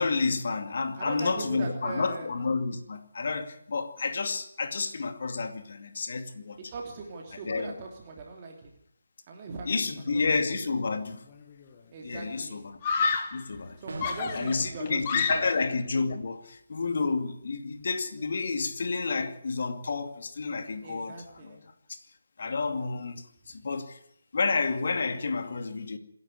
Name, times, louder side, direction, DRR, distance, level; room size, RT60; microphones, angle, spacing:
voice 1, 0.0-6.6 7.4-7.7 9.7-11.3 12.0-12.8 13.3-13.8 14.3-21.6 21.9-22.0 22.4-24.0 24.3-26.0, left 4 dB, 50° left, 2.5 m, -30 dB
voice 2, 1.0-2.3 6.7-8.7 9.3-9.8 10.1-10.3 11.9-12.6 13.8-15.5 20.8-21.6, right 4 dB, 25° right, 3.1 m, -40 dB
Screaming, 11.3-11.7 12.8-13.5 14.0-15.7, left 5 dB, 25° left, 2.0 m, -30 dB
sound 1, 13.9-14.4, right 2 dB, 55° right, 3.9 m, -39 dB
26.5 x 11.0 x 9.7 m
figure-of-eight pair, 150°, 0 cm